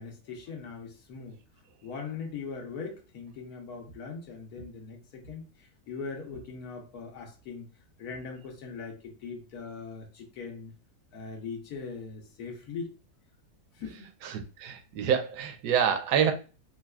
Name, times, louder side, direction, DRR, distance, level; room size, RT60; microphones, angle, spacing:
voice 1, 0.0-1.4 1.8-7.7 8.0-10.7 11.1-12.9 13.7-14.1, left 5 dB, 70° left, 1.3 m, -40 dB
voice 2, 14.2-16.3, right 8 dB, 80° right, 1.1 m, -27 dB
4.0 x 2.2 x 2.3 m
omnidirectional pair, 1.8 m